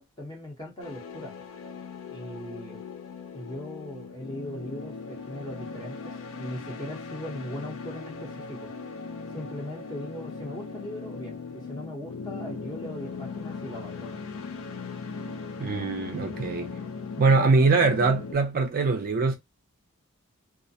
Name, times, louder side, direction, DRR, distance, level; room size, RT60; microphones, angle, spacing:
voice 1, 0.0-1.3 2.1-2.8 3.3-8.7 9.3-14.2, left 1 dB, 20° left, 0.8 m, -39 dB
sound 1, 0.8-18.3, left 4 dB, 65° left, 0.4 m, -39 dB
voice 2, 15.6-16.7 17.2-19.4, right 3 dB, 40° right, 0.4 m, -22 dB
2.4 x 2.1 x 2.6 m
head